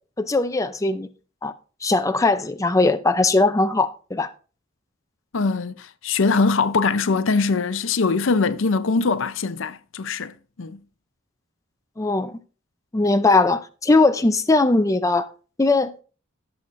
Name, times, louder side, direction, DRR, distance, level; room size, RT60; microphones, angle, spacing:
voice 1, 0.2-1.1 1.4-1.5 1.8-4.3 12.0-12.4 12.9-15.3 15.6-15.9, left 3 dB, 15° left, 0.5 m, -19 dB
voice 2, 5.3-10.8, left 4 dB, 65° left, 0.6 m, -22 dB
17.0 x 7.1 x 2.6 m
head